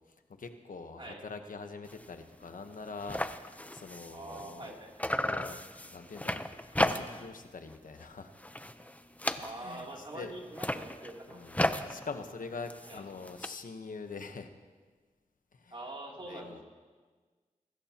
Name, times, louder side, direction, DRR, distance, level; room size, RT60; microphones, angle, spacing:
voice 1, 0.1-4.8 5.2-6.4 6.7-8.3 9.4-10.5 11.3-14.5 15.5-15.8 16.2-16.6, left 4 dB, 80° left, 7 dB, 1.2 m, -44 dB
sound 1, 1.8-2.1 2.4-2.5 2.7-4.7 5.0-7.4 7.7-8.1 8.4-9.9 10.4-13.5, left 1 dB, 10° left, 0.8 m, -35 dB
voice 2, 4.1-5.1 9.4-11.4 12.9-13.0 15.7-16.6, right 2 dB, 40° right, -2 dB, 3.1 m, -44 dB
24.5 x 13.0 x 3.0 m, 1.4 s
cardioid pair, 45°, 14 cm